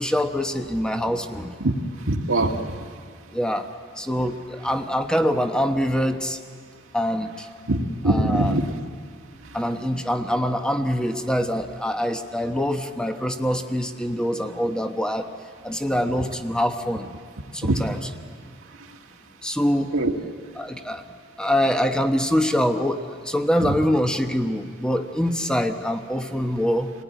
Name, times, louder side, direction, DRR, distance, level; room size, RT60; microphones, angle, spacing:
voice 1, 0.0-1.5 3.3-3.7 4.0-6.4 6.9-7.5 8.1-8.6 9.5-15.3 15.6-17.1 17.5-18.0 19.4-19.9 20.6-21.0 21.4-26.9, equal, 5° left, 6 dB, 1.0 m, -24 dB
voice 2, 2.1-2.8 7.7-8.7 17.6-17.8 19.9-20.1, right 2 dB, 85° right, 2 dB, 1.8 m, -22 dB
28.5 x 19.0 x 9.3 m, 2.2 s
head